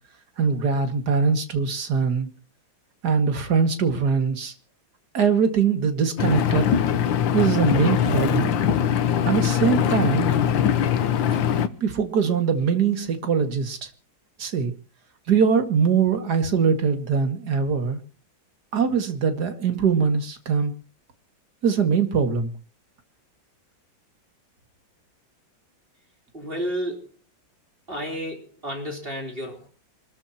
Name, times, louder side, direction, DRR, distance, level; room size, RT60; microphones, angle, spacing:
voice 1, 0.4-2.3 3.0-4.5 5.1-6.7 7.3-8.5 9.2-10.3 11.8-13.9 14.4-14.7 15.3-18.0 18.7-20.7 21.6-22.5, right 6 dB, 55° right, 7 dB, 2.6 m, -22 dB
Engine, 6.2-11.7, left 9 dB, 75° left, 1.7 m, -22 dB
voice 2, 26.3-27.1 27.9-29.7, equal, 25° right, 1 dB, 4.0 m, -31 dB
26.5 x 14.0 x 2.9 m, 0.34 s
omnidirectional pair, 2.1 m